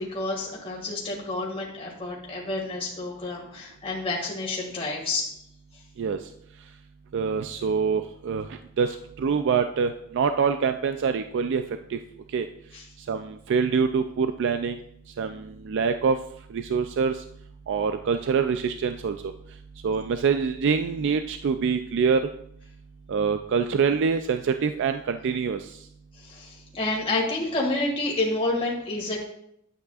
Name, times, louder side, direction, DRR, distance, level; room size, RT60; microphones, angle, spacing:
voice 1, 0.0-5.3 12.7-12.8 26.2-29.3, left 2 dB, 30° left, -3 dB, 1.8 m, -29 dB
voice 2, 7.1-11.6 11.9-12.0 12.3-12.5 13.1-14.8 15.2-16.2 16.5-17.2 17.7-19.3 19.8-22.2 23.1-25.8, right 5 dB, 60° right, 8 dB, 0.4 m, -25 dB
10.0 x 8.1 x 2.4 m, 0.73 s
head